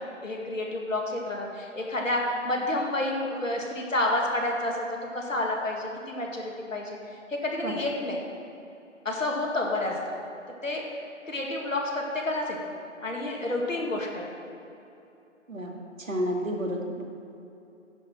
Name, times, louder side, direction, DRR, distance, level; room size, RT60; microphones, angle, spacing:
voice 1, 0.2-4.9 5.1-7.0 7.3-8.2 9.0-10.2 10.6-10.8 11.3-12.6 13.0-14.3, left 1 dB, 80° left, -1 dB, 2.2 m, -29 dB
voice 2, 15.5-17.0, equal, 90° right, 0 dB, 2.0 m, -31 dB
9.9 x 5.6 x 6.0 m, 2.8 s
figure-of-eight pair, 160°, 39 cm